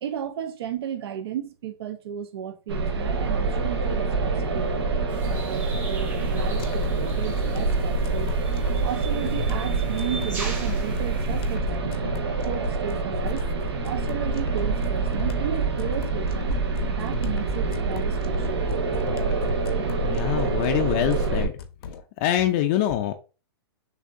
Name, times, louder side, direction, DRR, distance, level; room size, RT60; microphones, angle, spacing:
voice 1, 0.0-4.9 5.3-8.3 8.8-12.0 12.5-16.6 16.9-18.6, right 9 dB, 70° right, 0.6 m, -34 dB
sound 1, 2.7-21.5, right 3 dB, 90° right, 1.1 m, -26 dB
sound 2, 5.1-11.6, right 3 dB, 15° right, 0.9 m, -41 dB
sound 3, 6.6-22.0, left 5 dB, 70° left, 0.7 m, -37 dB
voice 2, 20.0-21.5 22.2-23.1, left 12 dB, 35° left, 0.4 m, -24 dB
6.3 x 2.6 x 2.5 m
hypercardioid pair, 155°, 13 cm